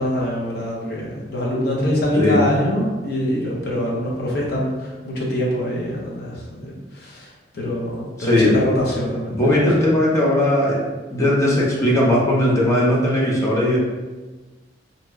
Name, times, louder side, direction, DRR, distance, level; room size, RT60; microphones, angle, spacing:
voice 1, 0.0-9.9, left 1 dB, 60° left, -4 dB, 0.7 m, -24 dB
voice 2, 8.2-8.5 9.3-10.8 11.1-13.8, left 1 dB, 15° left, -5 dB, 0.6 m, -18 dB
2.8 x 2.1 x 3.4 m, 1.3 s
head